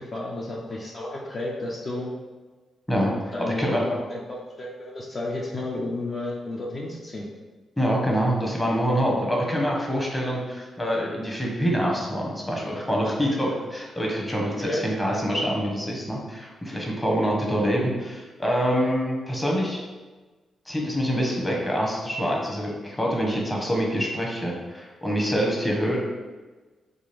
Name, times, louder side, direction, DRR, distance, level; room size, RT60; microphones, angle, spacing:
voice 1, 0.0-2.1 3.3-7.3 14.6-14.8, left 2 dB, 40° left, -4 dB, 0.5 m, -32 dB
voice 2, 2.9-3.8 7.8-19.8 20.7-26.0, equal, 15° left, -2 dB, 1.0 m, -25 dB
3.7 x 2.5 x 3.3 m, 1.3 s
cardioid pair, 65°, 0 cm